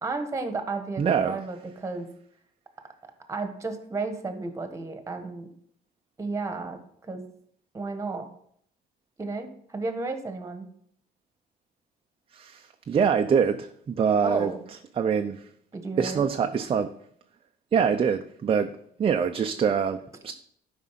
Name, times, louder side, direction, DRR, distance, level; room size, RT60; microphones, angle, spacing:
voice 1, 0.0-2.1 3.3-5.5 6.2-7.2 7.7-8.3 9.2-10.7 14.2-14.6 15.7-16.3, right 3 dB, 20° right, 1.5 m, -33 dB
voice 2, 1.0-1.4 12.3-14.5 15.0-15.5 16.0-16.9 17.7-20.3, right 6 dB, 35° right, 0.6 m, -25 dB
11.5 x 5.3 x 5.9 m
cardioid pair, 110°, 17 cm